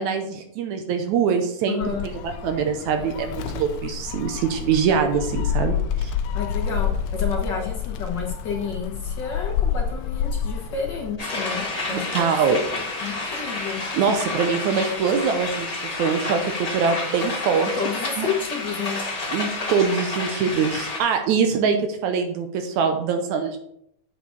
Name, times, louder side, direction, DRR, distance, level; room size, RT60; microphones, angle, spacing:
voice 1, 0.0-6.1 11.9-12.6 13.9-15.7 16.0-17.7 18.2-18.3 19.3-23.6, right 6 dB, 75° right, 6 dB, 2.1 m, -23 dB
voice 2, 1.7-2.0 6.3-12.3 12.7-13.8 17.7-19.0, left 5 dB, 50° left, 0 dB, 1.4 m, -30 dB
Gull seagull, 1.8-11.2, left 8 dB, 80° left, 1.6 m, -28 dB
sound 1, 11.2-21.0, left 3 dB, 25° left, 0.9 m, -30 dB
8.3 x 6.0 x 4.6 m, 0.73 s
omnidirectional pair, 3.5 m